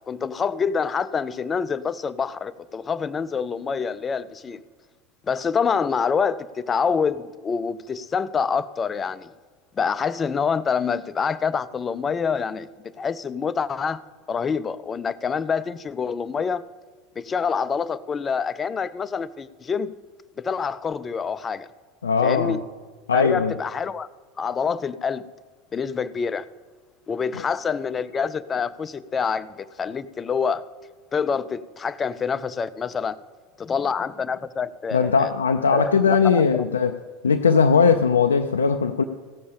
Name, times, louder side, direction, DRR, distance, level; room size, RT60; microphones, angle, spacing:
voice 1, 0.1-4.6 5.3-9.3 9.8-12.7 13.0-14.0 14.3-16.6 17.2-19.9 20.4-21.7 22.2-22.6 23.1-24.1 24.4-25.2 25.7-26.5 27.1-30.7 31.1-33.2 33.6-35.3 35.7-36.7, left 6 dB, 25° left, 0.5 m, -26 dB
voice 2, 22.0-22.6 23.1-23.5 34.9-36.9 37.2-39.0, left 5 dB, 85° left, 0.4 m, -19 dB
16.5 x 7.0 x 5.1 m
hypercardioid pair, 80°, 0 cm